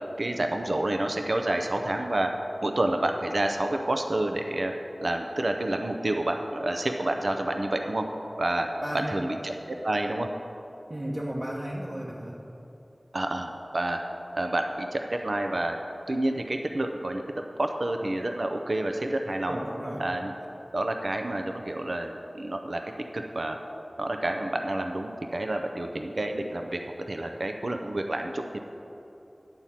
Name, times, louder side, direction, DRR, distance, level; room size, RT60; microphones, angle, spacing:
voice 1, 0.2-2.3 2.6-4.7 5.0-8.0 8.4-8.7 8.9-10.3 13.1-14.0 14.3-15.8 16.1-17.2 17.6-19.6 20.0-20.3 20.7-22.8 23.1-23.6 24.0-26.8 27.1-28.6, right 1 dB, 65° right, 4 dB, 0.5 m, -29 dB
voice 2, 8.8-9.2 10.9-12.4 19.5-20.0, equal, 45° right, -5 dB, 1.0 m, -34 dB
10.5 x 4.2 x 7.4 m, 2.9 s
wide cardioid pair, 55°, 0 cm